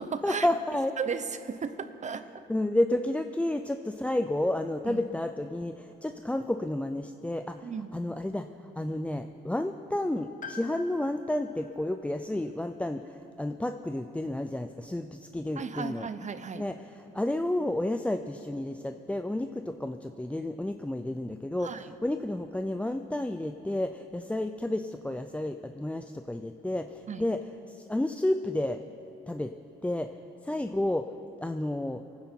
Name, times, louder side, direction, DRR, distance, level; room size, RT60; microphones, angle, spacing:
voice 1, 0.2-1.0 2.5-8.5 8.8-16.1 16.5-27.4 27.7-28.8 29.3-29.5 29.8-30.1 30.4-31.1 31.4-32.0, left 1 dB, 5° left, 7 dB, 0.5 m, -31 dB
voice 2, 1.0-2.2 4.9-5.0 7.6-7.9 15.6-16.6 21.6-21.8 27.1-27.3, right 6 dB, 40° right, 11 dB, 0.8 m, -35 dB
Piano, 10.4-14.3 14.5-14.6 15.8-15.9, left 5 dB, 45° left, 1.2 m, -49 dB
24.5 x 9.5 x 4.5 m, 2.9 s
cardioid pair, 90°, 19 cm